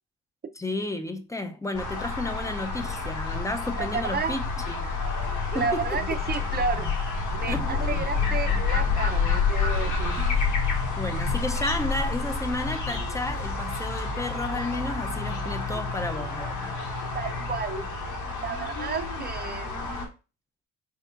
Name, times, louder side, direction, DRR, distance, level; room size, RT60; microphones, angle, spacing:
voice 1, 0.6-4.9 5.5-6.0 7.5-8.0 10.2-10.3 11.0-16.7, left 2 dB, 10° left, 0.6 m, -32 dB
sound 1, 1.7-20.1, left 4 dB, 80° left, 1.6 m, -28 dB
voice 2, 3.8-4.4 5.3-6.9 7.3-10.2 17.1-17.9 18.4-19.9, right 5 dB, 30° right, 0.6 m, -32 dB
4.3 x 3.6 x 2.5 m
cardioid pair, 90°, 30 cm